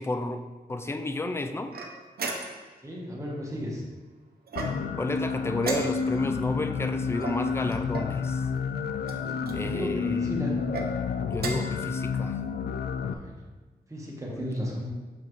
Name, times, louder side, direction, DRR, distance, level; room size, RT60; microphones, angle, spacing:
voice 1, 0.0-1.7 5.0-8.4 9.5-10.4 11.3-12.4 14.3-14.5, left 2 dB, 15° left, 7 dB, 0.4 m, -32 dB
sound 1, 1.7-2.8 4.5-5.1 5.6-6.3 7.2-8.2 9.0-9.6 10.5-10.9 11.3-11.8, right 3 dB, 65° right, 0.9 m, -35 dB
voice 2, 2.8-3.8 9.5-10.6 13.1-13.3 13.9-14.9, equal, 20° right, -2 dB, 1.3 m, -34 dB
sound 2, 4.6-13.1, left 6 dB, 75° left, 0.4 m, -30 dB
6.8 x 5.6 x 3.1 m, 1.3 s
wide cardioid pair, 145°, 17 cm